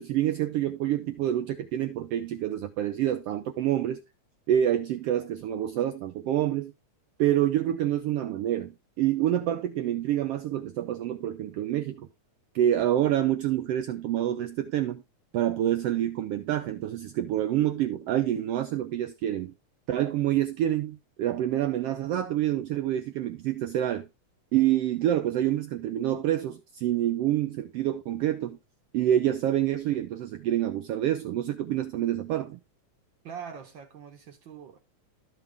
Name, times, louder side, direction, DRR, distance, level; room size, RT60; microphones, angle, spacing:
voice 1, 0.0-4.0 4.5-6.7 7.2-8.7 9.0-12.1 12.5-15.0 15.3-19.5 19.9-24.1 24.5-28.6 28.9-32.6, right 12 dB, 85° right, 1.3 m, -27 dB
voice 2, 33.2-34.8, right 7 dB, 65° right, 1.2 m, -42 dB
12.5 x 5.9 x 3.4 m
omnidirectional pair, 3.4 m